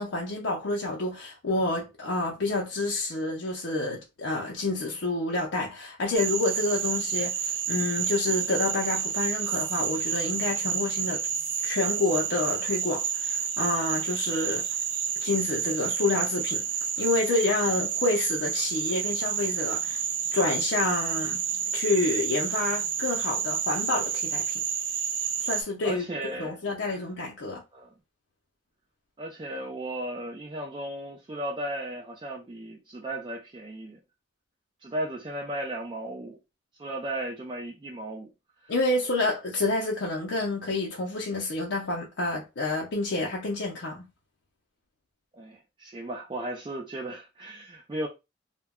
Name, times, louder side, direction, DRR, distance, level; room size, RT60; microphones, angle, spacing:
voice 1, 0.0-11.2 11.6-14.7 15.2-16.7 17.0-20.0 20.3-21.4 21.7-24.6 25.4-26.0 26.4-27.6 38.7-44.0, left 2 dB, 80° left, 0.5 m, -28 dB
Frog, 6.1-25.6, right 7 dB, 85° right, 0.5 m, -30 dB
voice 2, 25.8-27.0 27.7-27.9 29.2-34.0 34.8-36.4 36.8-38.3 38.6-38.7 45.3-48.1, right 1 dB, 25° right, 0.4 m, -35 dB
2.2 x 2.1 x 3.5 m
head